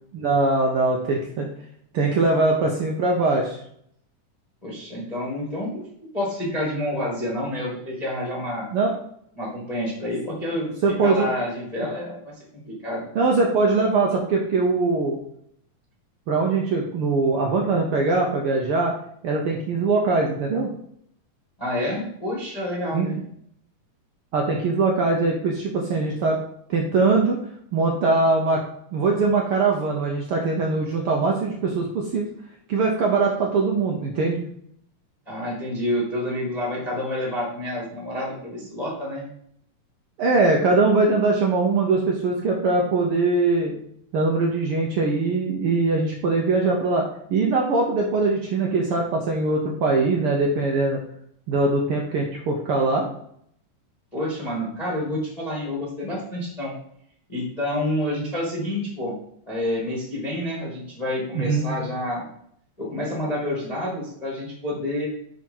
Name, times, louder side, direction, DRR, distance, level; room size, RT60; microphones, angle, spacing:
voice 1, 0.1-1.5 1.9-3.6 8.7-9.0 10.8-11.3 13.1-15.2 16.3-19.0 19.2-20.7 22.9-23.1 24.3-26.4 26.7-27.4 27.7-28.6 28.9-32.2 32.7-34.4 40.2-43.7 44.1-51.0 51.5-53.1 61.3-61.7, right 3 dB, 75° right, 0 dB, 1.3 m, -22 dB
voice 2, 4.6-8.7 9.3-10.7 11.0-12.3 12.8-13.1 21.6-23.3 35.3-39.3 54.1-56.7 57.3-59.2 59.5-62.2 62.8-65.1, left 1 dB, 15° left, -5 dB, 1.3 m, -28 dB
6.1 x 5.0 x 5.4 m, 0.69 s
omnidirectional pair, 3.5 m